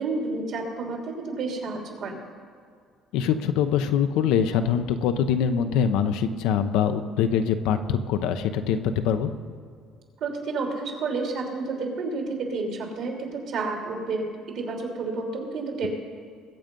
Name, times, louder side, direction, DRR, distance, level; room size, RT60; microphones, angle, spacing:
voice 1, 0.0-2.2 10.2-15.9, right 3 dB, 65° right, 1 dB, 3.0 m, -30 dB
voice 2, 3.1-9.3, left 8 dB, 85° left, 8 dB, 0.8 m, -24 dB
21.5 x 7.7 x 5.4 m, 2.2 s
cardioid pair, 115°, 0 cm